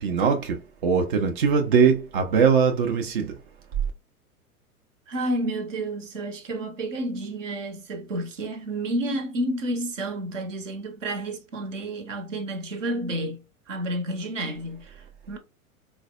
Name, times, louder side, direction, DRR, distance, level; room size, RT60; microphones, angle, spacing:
voice 1, 0.0-0.6 0.8-3.3, right 6 dB, 40° right, 0.4 m, -21 dB
voice 2, 5.1-13.4 13.7-15.4, right 1 dB, 60° right, 0.8 m, -30 dB
3.8 x 2.1 x 2.3 m
figure-of-eight pair, 100°, 43 cm